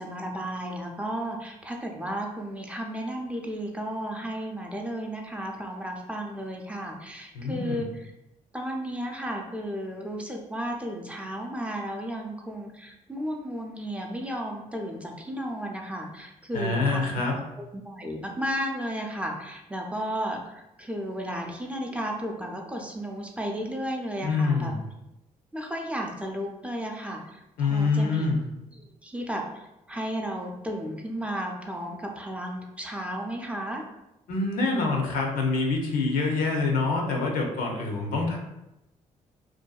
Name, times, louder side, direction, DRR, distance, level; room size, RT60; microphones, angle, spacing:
voice 1, 0.0-8.1 8.5-17.0 17.6-24.7 25.5-28.3 28.7-33.8, equal, 10° right, 0 dB, 0.5 m, -34 dB
voice 2, 7.3-7.8 16.5-17.4 24.2-24.8 27.6-28.4 34.3-38.4, left 3 dB, 85° left, 1 dB, 0.5 m, -26 dB
2.6 x 2.2 x 2.3 m, 0.90 s
supercardioid pair, 65°, 14 cm